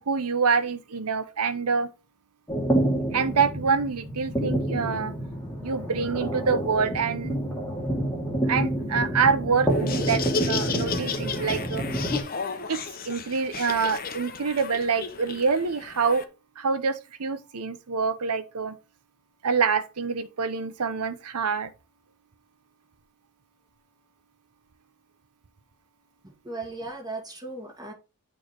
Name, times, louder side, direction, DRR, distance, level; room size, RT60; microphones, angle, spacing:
voice 1, 0.1-1.9 3.1-5.1 5.6-7.4 8.5-11.8 12.7-16.3 16.6-18.8 19.4-21.7, right 5 dB, 85° right, 0.8 m, -26 dB
sound 1, 2.5-12.2, right 1 dB, 10° left, 1.7 m, -28 dB
Laughter, 9.7-16.2, left 6 dB, 40° left, 0.8 m, -34 dB
voice 2, 26.2-27.9, right 2 dB, 20° right, 2.4 m, -37 dB
8.9 x 3.3 x 4.5 m
head